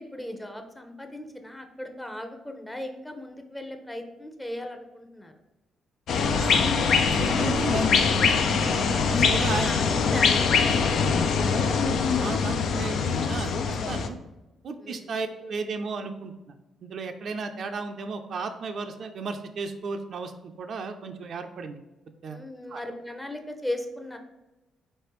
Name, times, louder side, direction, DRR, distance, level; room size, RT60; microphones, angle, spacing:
voice 1, 0.0-5.3 8.8-11.0 14.8-15.1 22.3-24.2, left 1 dB, 10° left, 5 dB, 0.7 m, -37 dB
sound 1, 6.1-14.1, left 5 dB, 65° left, 0.4 m, -23 dB
voice 2, 7.1-8.5 9.1-9.8 12.2-14.2 14.6-16.3 16.8-20.3 20.6-21.8 22.2-22.4 22.7-22.8, right 4 dB, 60° right, 6 dB, 0.4 m, -34 dB
4.2 x 3.3 x 3.0 m, 1.0 s
supercardioid pair, 55°, 0 cm